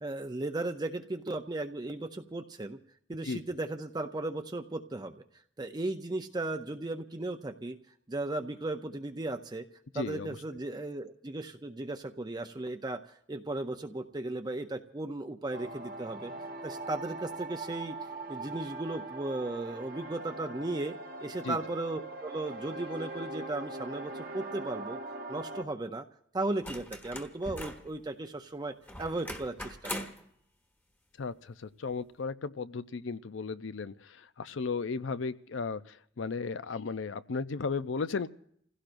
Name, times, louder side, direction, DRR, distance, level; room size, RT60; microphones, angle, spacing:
voice 1, 0.0-2.8 3.1-5.1 5.6-7.8 8.1-9.6 9.9-16.3 16.6-18.0 18.3-20.9 21.2-25.0 25.3-26.0 26.3-29.9, right 2 dB, 20° right, 6 dB, 0.6 m, -36 dB
voice 2, 9.9-10.3 21.4-21.6 31.2-38.3, left 4 dB, 85° left, 14 dB, 0.6 m, -35 dB
sound 1, 15.5-25.6, right 2 dB, 50° right, 1.1 m, -41 dB
sound 2, 26.6-27.9 28.9-30.3 31.9-32.0, left 1 dB, 10° left, 1.2 m, -40 dB
29.5 x 16.5 x 2.6 m, 0.67 s
head